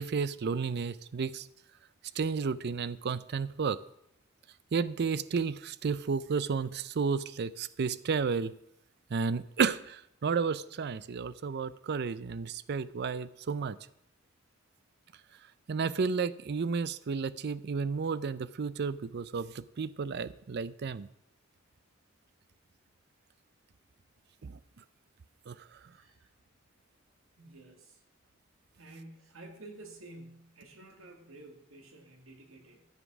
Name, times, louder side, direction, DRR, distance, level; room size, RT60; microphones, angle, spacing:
voice 1, 0.0-1.5 2.2-3.8 4.7-8.5 9.1-13.8 15.7-21.1 24.4-24.6 25.5-25.6, right 5 dB, 55° right, 0.5 m, -32 dB
voice 2, 25.9-26.3 27.4-28.0 28.8-32.9, right 2 dB, 75° right, 2.2 m, -51 dB
13.0 x 7.4 x 6.0 m
head